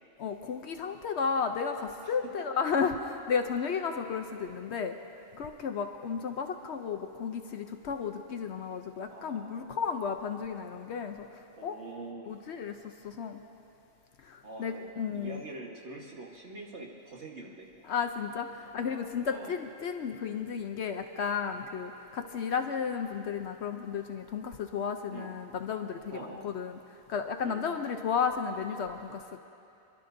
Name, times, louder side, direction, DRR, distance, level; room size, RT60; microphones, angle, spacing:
voice 1, 0.2-5.0 5.3-11.3 11.6-11.8 12.3-12.8 13.0-13.4 14.2-15.4 17.9-26.8 27.1-29.4, left 6 dB, 65° left, 6 dB, 0.8 m, -33 dB
voice 2, 2.0-2.5 9.1-9.7 11.6-12.3 14.4-17.8 18.6-19.6 25.1-25.4 26.1-26.5 27.4-27.8, right 2 dB, 60° right, -1 dB, 1.7 m, -45 dB
29.5 x 11.5 x 2.6 m, 2.7 s
omnidirectional pair, 1.4 m